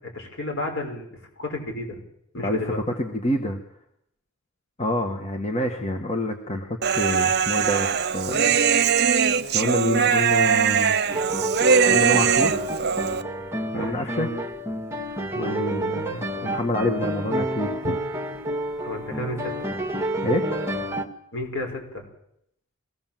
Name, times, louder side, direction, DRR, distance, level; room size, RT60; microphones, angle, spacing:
voice 1, 0.0-2.0 2.3-2.8 13.7-14.0 18.8-19.5 21.3-22.1, left 1 dB, 65° left, 2 dB, 6.0 m, -32 dB
voice 2, 2.4-3.6 4.8-8.6 9.0-9.2 9.5-11.0 11.9-12.6 13.7-14.4 15.3-18.0 20.2-20.4, left 1 dB, 30° left, 4 dB, 1.7 m, -27 dB
Human voice, 6.8-13.2, right 6 dB, 55° right, 0.9 m, -21 dB
sound 1, 11.1-21.1, right 1 dB, 15° right, 1.8 m, -29 dB
23.5 x 17.0 x 7.7 m, 0.77 s
head